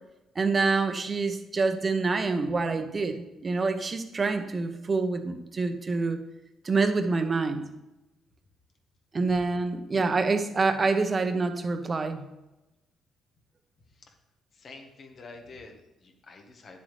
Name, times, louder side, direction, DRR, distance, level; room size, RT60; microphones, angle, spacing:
voice 1, 0.3-6.2 6.6-7.7 9.1-12.2, right 3 dB, 35° right, 7 dB, 1.0 m, -26 dB
voice 2, 14.5-16.8, left 3 dB, 50° left, 4 dB, 1.6 m, -48 dB
10.5 x 7.4 x 3.4 m, 0.99 s
cardioid pair, 90°, 0 cm